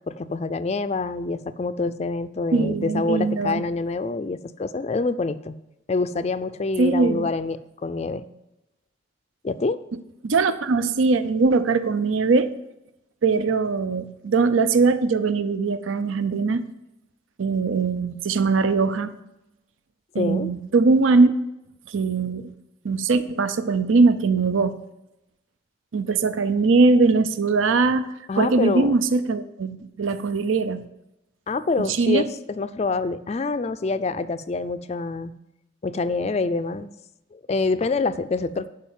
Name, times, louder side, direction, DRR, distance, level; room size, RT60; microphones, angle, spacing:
voice 1, 0.1-5.5 5.9-8.3 9.4-9.8 20.2-20.5 28.3-28.9 31.5-35.3 35.8-36.9 37.3-38.7, left 3 dB, 35° left, 13 dB, 0.3 m, -26 dB
voice 2, 2.5-3.6 6.8-7.3 10.2-12.5 13.2-16.6 17.4-19.1 20.1-21.3 21.9-22.5 22.8-24.8 25.9-28.1 28.4-30.9 31.8-32.2, right 4 dB, 80° right, 12 dB, 0.5 m, -21 dB
11.5 x 4.9 x 7.4 m, 0.90 s
head